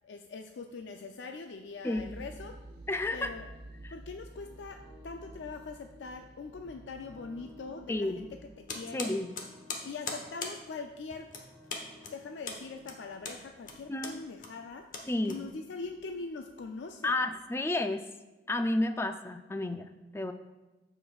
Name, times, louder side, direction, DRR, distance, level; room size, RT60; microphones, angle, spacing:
voice 1, 0.0-2.6 3.1-3.5 3.9-8.3 8.6-9.1 9.8-11.4 12.0-14.9 15.2-17.2, left 4 dB, 90° left, 5 dB, 0.4 m, -42 dB
sound 1, 2.0-8.5, right 1 dB, 60° right, 0.6 m, -50 dB
voice 2, 2.9-3.3 3.8-3.9 7.9-8.2 8.9-9.3 13.9-14.2 15.1-15.4 17.0-18.0 18.5-20.3, left 2 dB, 15° left, 8 dB, 0.3 m, -31 dB
sound 2, 4.4-13.3, left 2 dB, 15° right, 2.2 m, -57 dB
sound 3, 8.7-15.9, left 4 dB, 45° left, 1.0 m, -41 dB
14.5 x 5.0 x 2.3 m, 1.1 s
head